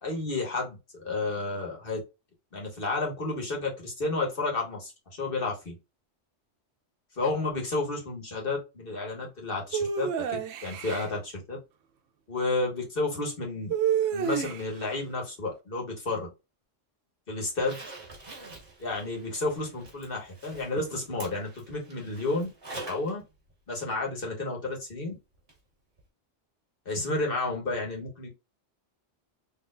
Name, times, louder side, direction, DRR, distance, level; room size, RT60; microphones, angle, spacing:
voice 1, 0.0-2.0 2.5-5.7 7.2-11.6 12.3-13.7 14.1-16.3 17.3-17.8 18.8-22.5 22.9-23.2 23.7-25.1 26.8-28.3, left 3 dB, 50° left, 0 dB, 1.7 m, -31 dB
sound 1, 9.7-11.1 13.7-14.9, right 8 dB, 85° right, 1.0 m, -28 dB
Zipper (clothing), 17.5-23.1 23.5-23.6 25.5-25.6 26.0-26.1, right 2 dB, 55° right, 1.9 m, -46 dB
4.2 x 3.2 x 2.5 m, 0.26 s
omnidirectional pair, 1.2 m